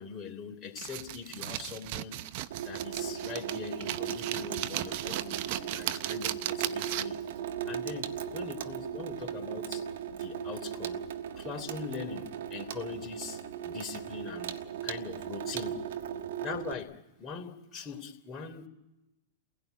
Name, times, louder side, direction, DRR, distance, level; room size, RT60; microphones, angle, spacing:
voice 1, 0.0-2.2 2.6-7.2 7.6-9.8 10.2-11.0 11.3-15.8 16.4-18.7, left 5 dB, 25° left, 3 dB, 3.3 m, -42 dB
sound 1, 0.8-7.3, right 14 dB, 55° right, 0.8 m, -36 dB
Water tap faucet / Sink (filling or washing), 2.5-16.7, right 8 dB, 70° right, 1.4 m, -37 dB
29.5 x 16.5 x 9.3 m, 1.0 s
hypercardioid pair, 110°, 0 cm